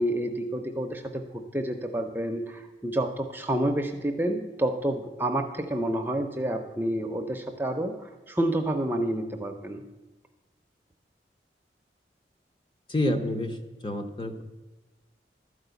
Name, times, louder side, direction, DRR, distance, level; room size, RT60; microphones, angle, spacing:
voice 1, 0.0-9.8, right 1 dB, 10° right, 4 dB, 0.5 m, -29 dB
voice 2, 12.9-13.6 13.8-14.4, left 1 dB, 25° left, 6 dB, 0.8 m, -28 dB
12.5 x 4.8 x 8.0 m, 1.1 s
head